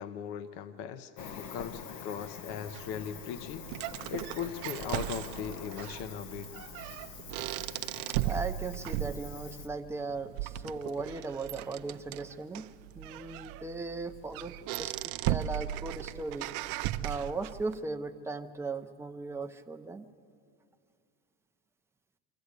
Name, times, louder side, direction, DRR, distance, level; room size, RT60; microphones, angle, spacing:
voice 1, 0.0-3.7 4.1-6.5, left 8 dB, 55° left, 11 dB, 0.9 m, -39 dB
Cricket, 1.2-9.7, left 6 dB, 80° left, 1.4 m, -46 dB
sound 1, 2.7-17.7, right 15 dB, 60° right, 0.6 m, -37 dB
voice 2, 8.2-12.7 12.9-16.5 17.0-20.1, right 3 dB, 5° right, 5 dB, 0.6 m, -38 dB
25.0 x 13.5 x 8.2 m, 2.4 s
supercardioid pair, 120°, 49 cm